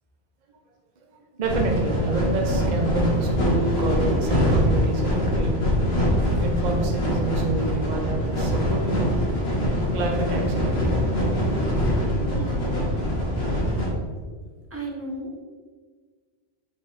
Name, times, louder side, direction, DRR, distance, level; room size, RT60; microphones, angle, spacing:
voice 1, 1.3-5.5 6.3-9.1 9.9-11.7 12.5-12.6, right 3 dB, 45° right, 2 dB, 0.8 m, -28 dB
sound 1, 1.4-13.9, equal, 70° left, 1.9 m, -23 dB
voice 2, 12.2-12.9 14.7-15.3, right 1 dB, 15° right, -1 dB, 1.0 m, -35 dB
5.2 x 5.0 x 4.1 m, 1.5 s
omnidirectional pair, 1.1 m